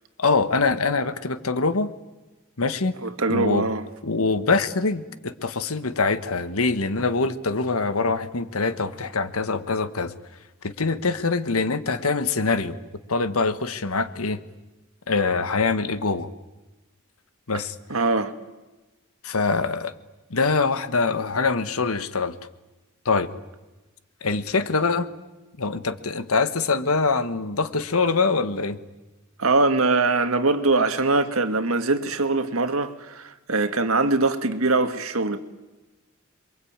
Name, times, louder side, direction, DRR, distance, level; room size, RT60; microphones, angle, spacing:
voice 1, 0.2-1.9 2.6-2.9 3.3-3.7 4.0-10.1 10.6-12.8 13.1-14.4 15.1-16.3 17.5-17.7 19.2-19.9 20.3-22.3 23.0-23.3 24.2-25.1 25.6-28.8, left 4 dB, 80° left, 1.4 m, -24 dB
voice 2, 3.0-3.8 17.9-18.3 29.4-35.4, right 3 dB, 75° right, 1.9 m, -22 dB
27.5 x 23.5 x 8.9 m
head